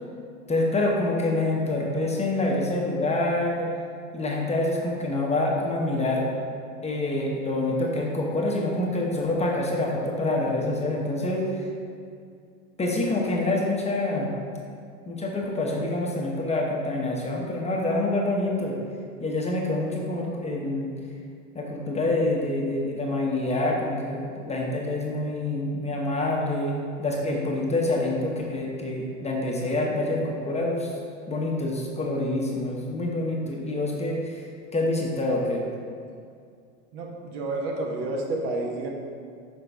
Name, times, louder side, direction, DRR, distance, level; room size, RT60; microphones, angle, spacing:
voice 1, 0.5-3.7 4.1-6.3 6.8-11.7 12.8-14.3 15.1-18.8 19.2-20.9 21.5-30.9 31.3-34.4 34.7-35.7, left 2 dB, 15° left, -2 dB, 0.8 m, -26 dB
voice 2, 36.9-38.9, right 2 dB, 55° right, 1 dB, 1.1 m, -30 dB
5.8 x 5.7 x 3.4 m, 2.3 s
hypercardioid pair, 95°, 41 cm